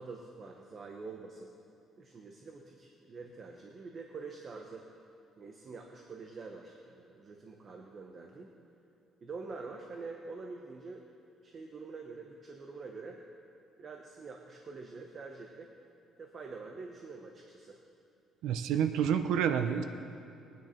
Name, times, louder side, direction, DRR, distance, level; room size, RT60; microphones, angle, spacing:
voice 1, 0.0-1.5 2.0-4.8 5.4-8.5 9.2-11.1 11.4-13.2 13.8-15.7 16.2-17.8, right 4 dB, 30° right, 2 dB, 0.9 m, -46 dB
voice 2, 18.4-19.8, right 8 dB, 85° right, 8 dB, 0.7 m, -28 dB
21.0 x 9.4 x 4.4 m, 2.6 s
cardioid pair, 170°, 0 cm